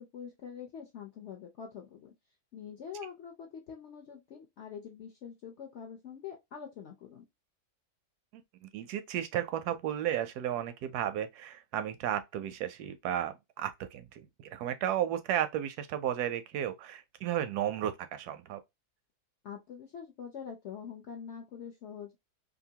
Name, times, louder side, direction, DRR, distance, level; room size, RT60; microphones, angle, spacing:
voice 1, 0.0-2.1 2.5-7.2 19.4-22.2, left 7 dB, 60° left, 0.8 m, -45 dB
voice 2, 8.3-18.6, right 11 dB, 85° right, 1.1 m, -34 dB
2.9 x 2.5 x 2.7 m
omnidirectional pair, 1.6 m